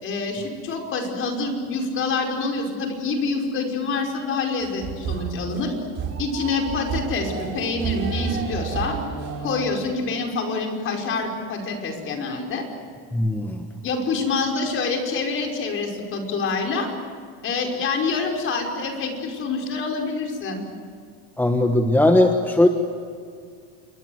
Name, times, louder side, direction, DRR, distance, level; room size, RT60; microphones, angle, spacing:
voice 1, 0.0-5.7 6.2-9.0 9.4-12.7 13.8-16.9 17.4-20.6, left 4 dB, 40° left, 2 dB, 5.4 m, -26 dB
sound 1, 4.6-9.6, right 6 dB, 35° right, 5.0 m, -30 dB
voice 2, 13.1-13.7 21.4-22.7, left 1 dB, 5° left, 5 dB, 1.4 m, -18 dB
28.0 x 22.5 x 8.1 m, 2.1 s
cardioid pair, 140°, 33 cm